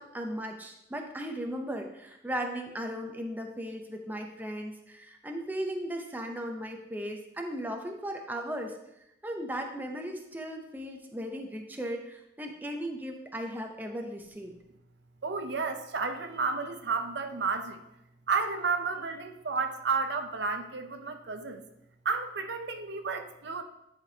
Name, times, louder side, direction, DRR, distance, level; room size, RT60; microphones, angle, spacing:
voice 1, 0.0-8.8 9.2-14.6, equal, 10° right, 3 dB, 0.6 m, -37 dB
voice 2, 15.2-17.8 18.3-21.6 22.0-23.6, right 4 dB, 65° right, 7 dB, 0.6 m, -31 dB
10.5 x 5.1 x 2.8 m, 0.84 s
head